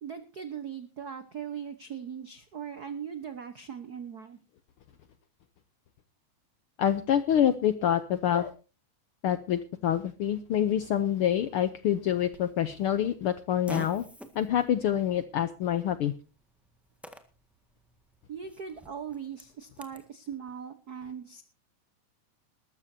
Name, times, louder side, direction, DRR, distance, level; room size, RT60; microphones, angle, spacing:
voice 1, 0.0-4.4 18.3-21.4, right 7 dB, 70° right, 10 dB, 0.9 m, -39 dB
voice 2, 6.8-8.5 9.2-14.0 14.3-16.1, left 10 dB, 85° left, 12 dB, 1.2 m, -26 dB
Fart, 12.3-20.1, right 1 dB, ahead, 0.3 m, -48 dB
21.0 x 13.5 x 2.7 m, 0.32 s
omnidirectional pair, 3.5 m